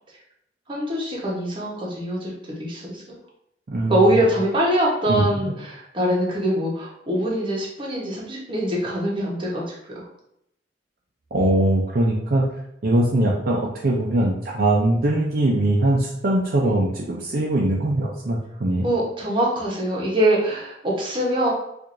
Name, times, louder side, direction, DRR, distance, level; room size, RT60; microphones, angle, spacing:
voice 1, 0.7-3.0 3.8-10.1 18.8-21.5, right 1 dB, 30° right, -4 dB, 1.0 m, -23 dB
voice 2, 3.7-4.2 5.1-5.5 11.3-12.5 12.8-18.9, right 1 dB, 55° right, -3 dB, 0.5 m, -21 dB
4.5 x 2.5 x 2.5 m, 0.78 s
head